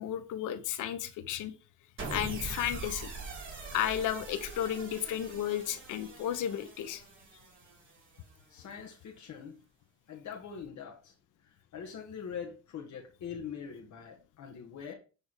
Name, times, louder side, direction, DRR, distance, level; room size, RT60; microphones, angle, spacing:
voice 1, 0.0-1.5 2.1-3.1 3.7-7.0, left 10 dB, 85° left, 11 dB, 1.0 m, -33 dB
sound 1, 2.0-8.3, right 4 dB, 40° right, 3.8 m, -43 dB
voice 2, 8.5-9.6 10.1-11.1 11.4-14.9, left 7 dB, 70° left, 0 dB, 1.7 m, -43 dB
10.0 x 3.6 x 4.7 m, 0.34 s
cardioid pair, 90°, 30 cm